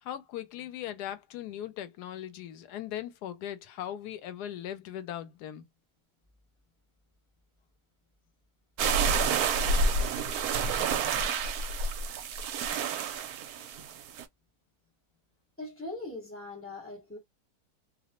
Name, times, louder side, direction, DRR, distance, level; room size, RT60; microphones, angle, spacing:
voice 1, 0.0-5.7, left 11 dB, 80° left, 1.1 m, -39 dB
sound 1, 8.8-14.2, right 4 dB, 75° right, 1.0 m, -29 dB
voice 2, 15.6-17.2, left 2 dB, 10° left, 0.9 m, -40 dB
2.7 x 2.0 x 2.8 m
omnidirectional pair, 1.7 m